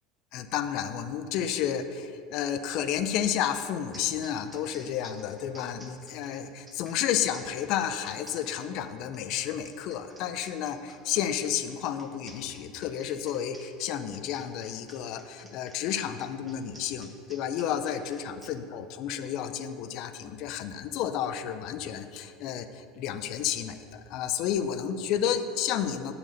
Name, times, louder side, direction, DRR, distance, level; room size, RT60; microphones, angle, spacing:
voice 1, 0.3-26.1, left 9 dB, 55° left, 10 dB, 0.5 m, -31 dB
sound 1, 3.6-3.7 3.9-18.5, right 1 dB, 10° right, 1.0 m, -52 dB
7.2 x 4.0 x 6.4 m, 2.6 s
supercardioid pair, 135°, 0 cm